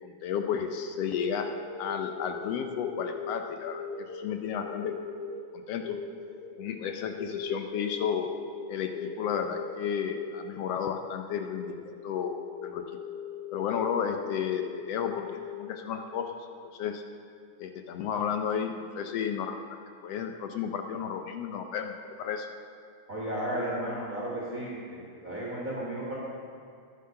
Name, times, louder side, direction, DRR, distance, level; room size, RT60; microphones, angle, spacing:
voice 1, 0.0-1.5 1.8-3.8 4.1-4.9 5.5-6.0 6.5-8.3 8.7-12.4 12.6-12.8 13.5-16.3 16.7-17.0 17.6-19.6 20.0-21.9 22.2-22.5, left 8 dB, 75° left, 6 dB, 1.5 m, -32 dB
sound 1, 0.6-16.3, left 5 dB, 60° left, 1.7 m, -40 dB
voice 2, 23.1-24.8 25.2-26.1, right 1 dB, 30° right, -5 dB, 1.8 m, -33 dB
10.5 x 9.7 x 6.5 m, 2.3 s
omnidirectional pair, 3.4 m